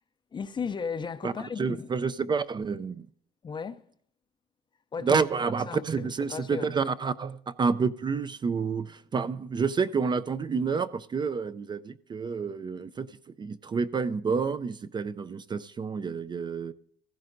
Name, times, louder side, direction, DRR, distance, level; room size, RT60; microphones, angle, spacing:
voice 1, 0.3-1.9 3.4-3.8 4.9-5.2 5.7-6.7, left 6 dB, 25° left, 0.5 m, -35 dB
voice 2, 1.2-3.1 5.0-16.7, right 5 dB, 25° right, 0.4 m, -29 dB
15.0 x 15.0 x 2.6 m
cardioid pair, 110°, 17 cm